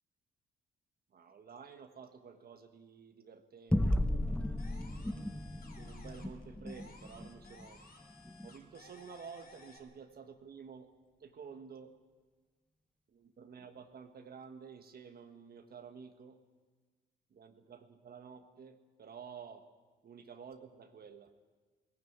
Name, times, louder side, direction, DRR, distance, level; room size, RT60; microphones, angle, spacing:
voice 1, 1.1-4.6 5.8-7.8 8.4-10.9 11.2-11.9 13.1-16.4 17.3-19.6 20.0-21.3, right 6 dB, 50° right, 6 dB, 1.5 m, -51 dB
sound 1, 3.7-8.5, left 1 dB, 5° left, 0.9 m, -35 dB
sound 2, 4.6-6.4 6.7-9.8, left 3 dB, 50° left, 4.0 m, -58 dB
18.5 x 15.5 x 9.5 m, 1.4 s
cardioid pair, 90°, 20 cm